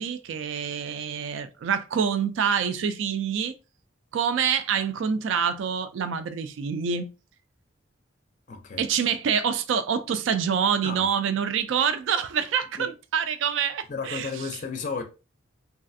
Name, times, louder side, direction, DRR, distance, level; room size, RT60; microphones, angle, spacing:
voice 1, 0.0-3.5 4.1-7.1 8.8-14.3, right 7 dB, 75° right, 0.3 m, -26 dB
voice 2, 8.5-8.9 10.8-11.1 12.8-12.9 13.9-15.0, left 5 dB, 40° left, 0.4 m, -33 dB
3.2 x 2.4 x 2.5 m
head